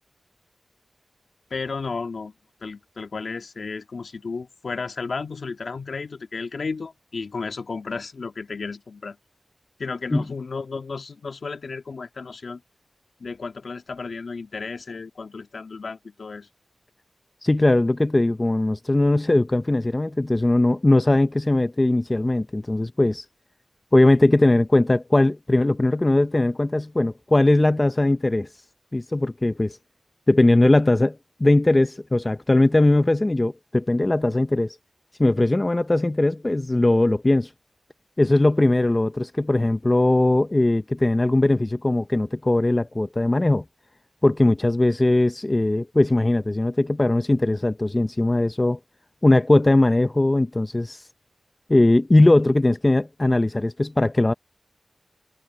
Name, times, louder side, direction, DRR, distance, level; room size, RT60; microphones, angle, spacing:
voice 1, 1.5-2.3 2.6-9.2 9.8-12.6 13.2-16.5, left 4 dB, 75° left, 1.9 m, -33 dB
voice 2, 17.4-23.2 23.9-28.5 28.9-29.8 30.3-34.8 35.2-37.5 38.2-43.6 44.2-48.8 49.2-51.0 51.7-54.3, left 2 dB, 30° left, 0.6 m, -20 dB
wide cardioid pair, 60°, 0 cm